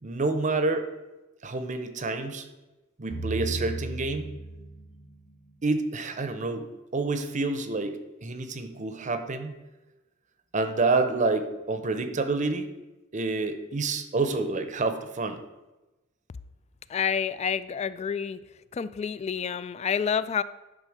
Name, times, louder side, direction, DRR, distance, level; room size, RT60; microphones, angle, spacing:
voice 1, 0.0-0.9 1.4-2.5 3.0-4.3 5.6-9.6 10.5-12.7 13.1-15.4, right 3 dB, 40° right, 9 dB, 0.7 m, -28 dB
sound 1, 3.1-5.5, right 2 dB, 55° left, 1.2 m, -35 dB
voice 2, 16.9-18.4 18.7-20.4, left 7 dB, 35° left, 16 dB, 0.3 m, -28 dB
10.5 x 3.7 x 6.4 m, 1.1 s
head